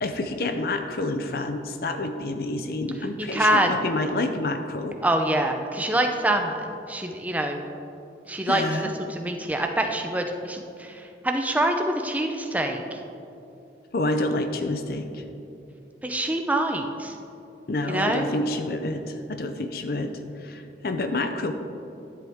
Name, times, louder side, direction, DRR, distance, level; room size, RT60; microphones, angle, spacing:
voice 1, 0.0-5.0 8.4-8.9 13.9-15.2 17.7-21.5, left 2 dB, 55° left, 7 dB, 0.6 m, -28 dB
voice 2, 3.2-3.8 5.0-7.7 8.3-8.6 9.1-13.0 16.0-17.2 17.9-18.3, right 1 dB, 10° right, 4 dB, 0.6 m, -25 dB
12.0 x 7.8 x 3.6 m, 2.8 s
head